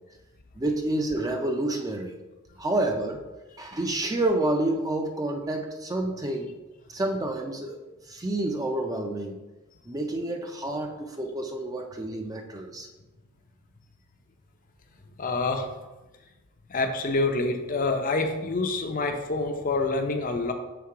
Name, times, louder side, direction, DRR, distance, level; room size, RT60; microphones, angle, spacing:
voice 1, 0.6-2.2 2.6-3.2 3.6-6.5 6.9-9.4 9.9-12.9, right 1 dB, 15° right, 3 dB, 0.4 m, -29 dB
voice 2, 15.2-15.7 16.7-20.5, left 3 dB, 35° left, 5 dB, 0.5 m, -27 dB
5.9 x 3.7 x 4.8 m, 1.1 s
head